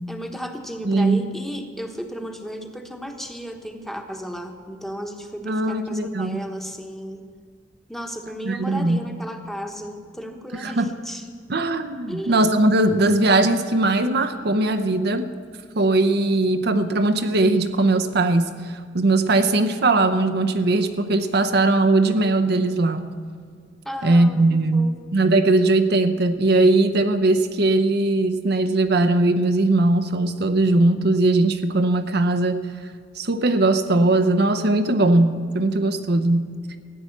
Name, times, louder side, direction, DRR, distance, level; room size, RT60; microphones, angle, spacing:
voice 1, 0.1-7.2 7.9-11.2 12.1-12.5 23.8-24.9, equal, ahead, 4 dB, 1.2 m, -34 dB
voice 2, 0.8-1.2 5.4-6.4 8.4-9.0 10.6-10.9 11.5-15.3 15.7-23.1 24.0-32.7 33.2-36.5, right 2 dB, 60° right, 8 dB, 0.8 m, -20 dB
15.5 x 9.4 x 7.2 m, 2.1 s
head